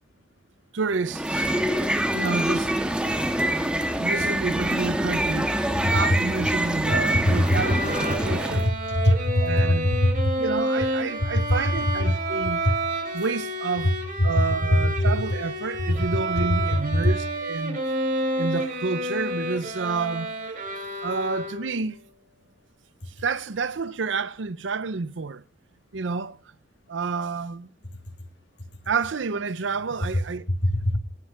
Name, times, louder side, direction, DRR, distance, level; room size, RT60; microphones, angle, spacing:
voice 1, 0.7-1.5 2.1-2.7 4.0-5.5 5.9-8.7 9.4-9.9 10.4-12.7 13.1-13.9 14.2-17.8 18.4-20.3 21.0-22.0 23.1-25.4 25.9-26.4 26.9-27.7 28.9-30.4, right 4 dB, 80° right, 0.6 m, -29 dB
sound 1, 1.0-8.7, right 1 dB, 5° right, 1.3 m, -25 dB
Bowed string instrument, 7.2-21.9, right 1 dB, 45° right, 3.3 m, -30 dB
voice 2, 8.9-10.3 30.6-31.0, left 1 dB, 65° left, 2.4 m, -22 dB
18.5 x 6.6 x 5.7 m
head